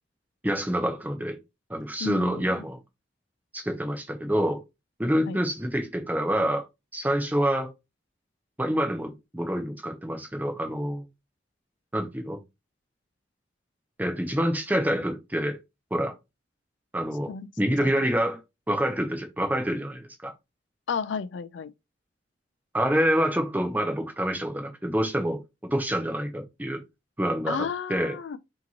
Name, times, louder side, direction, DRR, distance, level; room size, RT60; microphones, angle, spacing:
voice 1, 0.4-1.4 1.7-2.8 3.5-4.6 5.0-6.7 6.9-7.7 8.6-11.0 11.9-12.4 14.0-15.6 15.9-16.1 16.9-18.4 18.7-20.3 22.7-25.4 25.7-26.8 27.2-27.6 27.9-28.2, equal, 10° right, 0.7 m, -27 dB
voice 2, 2.0-2.6 5.3-5.4 17.3-17.5 17.8-17.9 20.9-21.7 27.5-28.4, left 6 dB, 80° left, 0.4 m, -32 dB
5.0 x 2.9 x 2.8 m
head